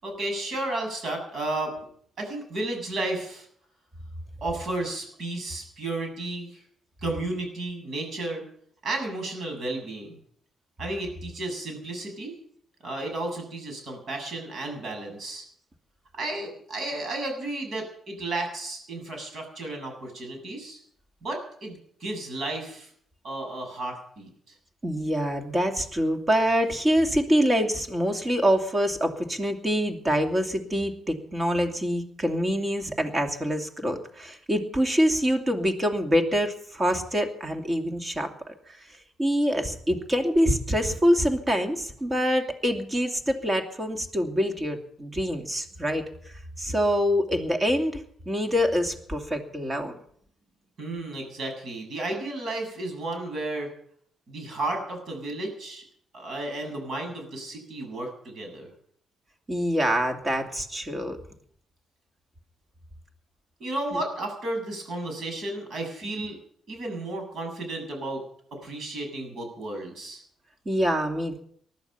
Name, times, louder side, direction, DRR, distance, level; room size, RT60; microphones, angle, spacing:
voice 1, 0.0-1.7 2.2-3.5 4.4-6.6 7.0-8.4 8.8-10.2 10.8-12.3 12.8-15.4 16.1-20.8 21.2-22.9 23.2-24.3 50.8-53.7 54.3-55.8 56.1-58.7 63.6-66.3 66.7-68.2 68.5-70.2, right 2 dB, 60° right, 3 dB, 7.4 m, -33 dB
voice 2, 24.8-38.8 39.2-46.0 46.6-48.0 48.3-50.0 59.5-61.2 66.2-66.3 70.7-71.4, equal, 25° right, 5 dB, 2.6 m, -25 dB
19.5 x 12.0 x 5.7 m, 0.63 s
cardioid pair, 90°, 0 cm